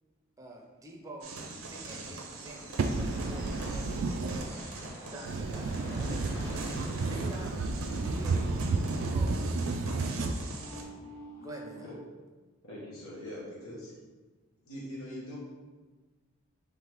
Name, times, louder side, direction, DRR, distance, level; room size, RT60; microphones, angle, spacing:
voice 1, 0.4-2.8 3.3-4.6 5.0-7.5 8.0-8.5 8.9-10.1 11.4-11.9, right 1 dB, 15° right, 0 dB, 0.5 m, -46 dB
sound 1, 1.2-10.8, right 3 dB, 85° right, 0.7 m, -44 dB
sound 2, 2.1-8.5, equal, 15° left, 0.8 m, -49 dB
voice 2, 2.8-4.4 5.3-10.4, right 3 dB, 65° right, 4 dB, 0.3 m, -31 dB
sound 3, 2.9-12.0, equal, 45° left, 0.9 m, -51 dB
voice 3, 12.6-13.9 14.6-15.4, equal, 80° left, -6 dB, 1.1 m, -42 dB
3.6 x 3.3 x 4.5 m, 1.3 s
head